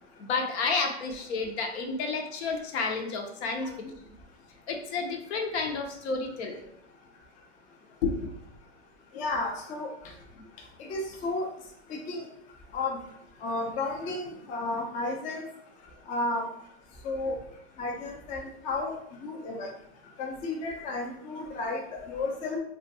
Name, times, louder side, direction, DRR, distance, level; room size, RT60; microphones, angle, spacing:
voice 1, 0.2-3.7 4.7-6.7 8.0-8.3, left 4 dB, 70° left, 3 dB, 0.7 m, -31 dB
voice 2, 9.1-9.9 10.8-11.5 11.9-12.2 12.7-13.0 13.4-15.4 16.1-16.4 17.0-17.4 17.8-18.9 19.2-19.7 20.2-22.6, left 2 dB, 25° left, 1 dB, 0.4 m, -32 dB
2.4 x 2.3 x 2.7 m, 0.70 s
hypercardioid pair, 115°, 34 cm